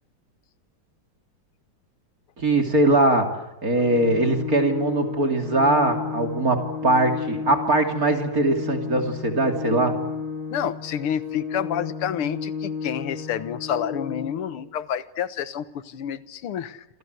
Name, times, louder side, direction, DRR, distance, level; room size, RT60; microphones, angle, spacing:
voice 1, 2.4-10.0, right 2 dB, 40° right, 4 dB, 3.1 m, -21 dB
Organ, 3.7-14.7, left 5 dB, 25° left, 1.1 m, -33 dB
voice 2, 10.5-16.9, left 9 dB, 85° left, 13 dB, 2.1 m, -29 dB
27.5 x 26.5 x 8.0 m, 0.97 s
omnidirectional pair, 2.3 m